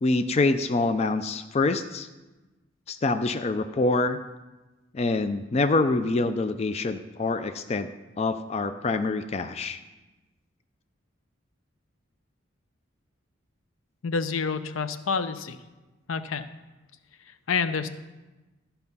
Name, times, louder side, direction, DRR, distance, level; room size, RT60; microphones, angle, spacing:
voice 1, 0.0-2.1 2.9-4.2 4.9-7.9 8.2-9.8, left 3 dB, 30° left, 10 dB, 0.4 m, -25 dB
voice 2, 14.0-15.6 16.1-16.5 17.5-17.9, left 5 dB, 90° left, 12 dB, 0.6 m, -28 dB
12.0 x 5.8 x 5.4 m, 1.1 s
head